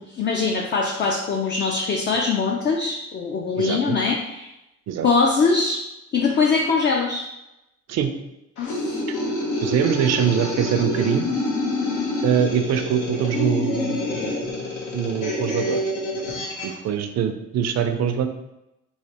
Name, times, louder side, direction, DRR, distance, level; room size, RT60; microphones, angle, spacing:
voice 1, 0.0-4.5 5.0-5.9 6.1-7.3 8.6-9.0, left 4 dB, 35° left, 1 dB, 0.4 m, -22 dB
voice 2, 3.6-4.0 4.9-5.1 7.9-8.1 9.6-11.3 12.2-14.0 14.9-15.9 16.6-18.3, right 8 dB, 60° right, 7 dB, 0.5 m, -23 dB
sound 1, 8.6-16.8, left 2 dB, 85° left, 0.9 m, -27 dB
3.2 x 3.2 x 2.8 m, 0.91 s
cardioid pair, 90°, 30 cm